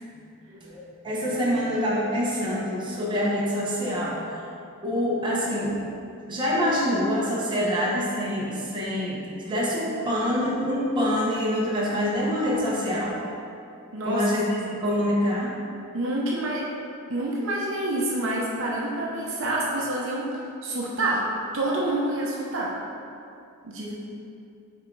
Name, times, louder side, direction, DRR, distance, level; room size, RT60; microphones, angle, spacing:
voice 1, 0.6-4.5 4.8-5.7 6.3-13.1 14.0-14.4 14.8-15.5, equal, 20° right, -6 dB, 1.0 m, -26 dB
voice 2, 13.9-14.3 14.6-14.7 15.9-16.6 17.1-21.2 21.5-22.7 23.6-23.9, right 1 dB, 55° right, -4 dB, 0.9 m, -27 dB
6.4 x 3.7 x 4.6 m, 2.5 s
head